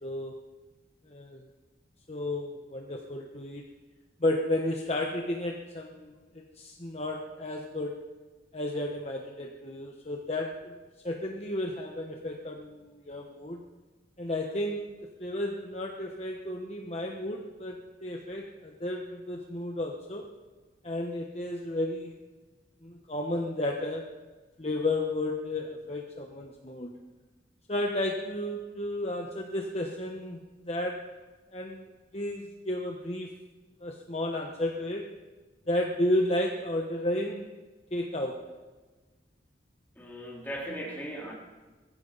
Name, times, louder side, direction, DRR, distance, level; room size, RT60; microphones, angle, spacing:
voice 1, 0.0-0.3 1.1-1.4 2.1-3.6 4.2-8.0 8.5-10.8 11.0-13.6 14.2-14.9 15.2-20.3 20.8-22.2 22.8-24.1 24.6-26.9 27.7-31.1 31.5-31.8 32.1-33.3 33.8-35.1 35.7-37.5 37.9-38.5, left 1 dB, 35° left, 1 dB, 1.2 m, -32 dB
voice 2, 40.0-41.3, equal, 10° left, -4 dB, 3.9 m, -38 dB
22.0 x 15.5 x 4.1 m, 1.3 s
head